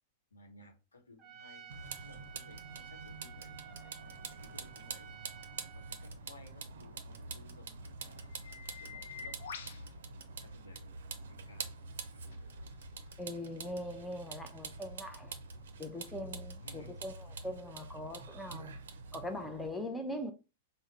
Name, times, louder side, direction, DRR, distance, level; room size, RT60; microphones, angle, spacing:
voice 1, 0.3-1.7 2.0-5.5 5.7-9.4 10.1-10.9 11.3-12.2 16.6-17.0, left 2 dB, 80° left, 0.9 m, -59 dB
Trumpet, 1.2-6.1, right 9 dB, 25° right, 0.8 m, -53 dB
sound 1, 1.7-10.9 11.4-17.2, left 6 dB, 65° left, 0.5 m, -54 dB
Vehicle, 1.7-19.7, right 4 dB, 65° right, 0.5 m, -46 dB
voice 2, 13.2-15.3 15.8-18.8 19.1-20.3, left 1 dB, 5° left, 0.6 m, -41 dB
3.6 x 2.1 x 4.4 m
figure-of-eight pair, 100°, 0 cm